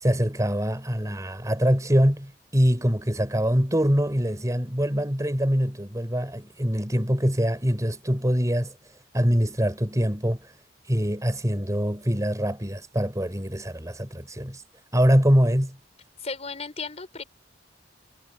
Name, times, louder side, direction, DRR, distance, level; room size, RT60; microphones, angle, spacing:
voice 1, 0.0-8.7 9.1-10.4 10.9-14.6 14.9-15.8, equal, 20° right, 3.8 m, -24 dB
voice 2, 16.2-17.2, left 4 dB, 35° left, 4.1 m, -35 dB
head